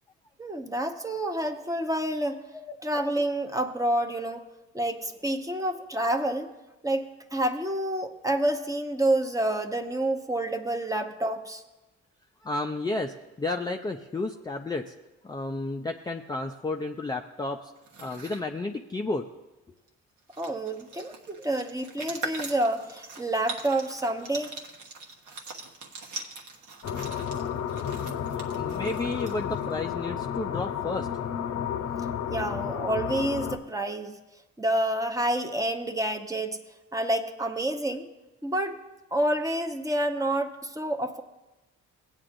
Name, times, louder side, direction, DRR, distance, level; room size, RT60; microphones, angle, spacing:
voice 1, 0.4-2.4 2.8-4.4 4.7-6.5 6.8-11.6 20.4-24.5 32.3-34.2 34.6-36.6 36.9-38.1 38.4-38.8 39.1-41.2, right 1 dB, 10° right, 6 dB, 0.8 m, -28 dB
voice 2, 12.4-14.9 15.2-17.7 18.0-19.2 28.5-31.1, left 2 dB, 15° left, 2 dB, 0.4 m, -32 dB
sound 1, 17.8-18.4 19.9-20.0 20.2-29.7, right 3 dB, 75° right, 1.2 m, -42 dB
sound 2, 26.8-33.6, left 8 dB, 60° left, 0.7 m, -32 dB
16.5 x 8.8 x 2.6 m, 1.0 s
cardioid pair, 90°, 30 cm